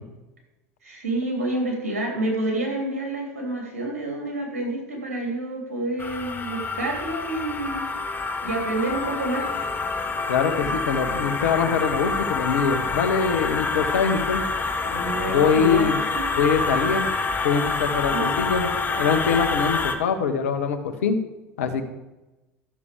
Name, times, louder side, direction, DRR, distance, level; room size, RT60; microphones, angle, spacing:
voice 1, 0.8-7.8 8.4-9.6 14.8-16.3 18.1-18.4, right 1 dB, 85° right, -1 dB, 3.2 m, -28 dB
sound 1, 6.0-20.0, left 3 dB, 25° left, 1.2 m, -27 dB
voice 2, 10.3-14.4 15.3-16.0 16.4-17.1 17.4-21.2 21.6-21.8, left 6 dB, 75° left, 8 dB, 1.1 m, -23 dB
12.5 x 6.9 x 5.1 m, 1.1 s
hypercardioid pair, 75°, 8 cm